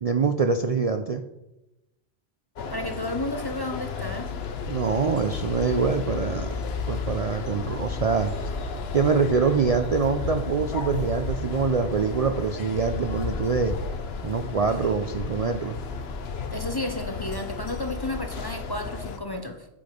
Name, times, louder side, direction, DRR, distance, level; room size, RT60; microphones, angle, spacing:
voice 1, 0.0-1.2 4.7-6.5 6.9-8.3 8.9-13.8 14.2-15.8, right 5 dB, 50° right, 7 dB, 0.4 m, -24 dB
sound 1, 2.6-19.2, left 5 dB, 75° left, 1.0 m, -33 dB
voice 2, 2.7-4.3 16.5-19.7, left 2 dB, 30° left, 6 dB, 0.6 m, -32 dB
8.4 x 5.9 x 5.1 m, 0.96 s
omnidirectional pair, 1.1 m